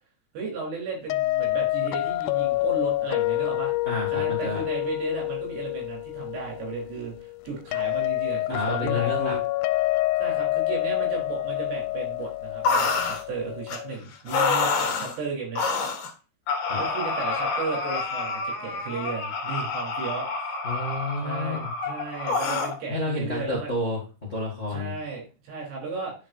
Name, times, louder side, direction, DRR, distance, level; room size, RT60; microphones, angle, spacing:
voice 1, 0.3-3.7 4.1-9.4 10.2-15.7 16.8-20.3 21.2-23.7 24.7-26.1, right 4 dB, 75° right, -1 dB, 5.6 m, -34 dB
sound 1, 1.1-14.0, left 18 dB, 90° left, 2.7 m, -28 dB
voice 2, 3.8-4.6 8.5-9.3 16.7-16.8 20.6-21.7 22.9-24.0 24.3-24.9, left 2 dB, 35° left, -2 dB, 1.2 m, -30 dB
sound 2, 12.7-13.2 13.7-13.8 14.3-15.2 15.6-16.1 16.5-22.8, left 4 dB, 65° left, 2.6 m, -27 dB
11.0 x 4.9 x 2.6 m, 0.33 s
omnidirectional pair, 4.7 m